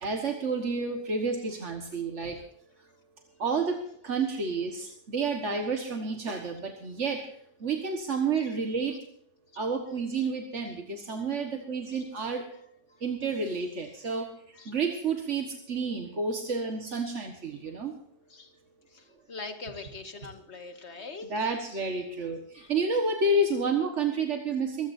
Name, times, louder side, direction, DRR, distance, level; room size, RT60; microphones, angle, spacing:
voice 1, 0.0-2.4 3.4-7.3 7.6-9.0 9.6-12.4 13.0-14.3 14.7-17.9 21.3-24.9, right 3 dB, 80° right, 3 dB, 1.9 m, -30 dB
voice 2, 18.9-21.6 22.6-22.7, left 3 dB, 70° left, 6 dB, 2.1 m, -43 dB
23.5 x 15.0 x 2.7 m, 0.67 s
omnidirectional pair, 1.2 m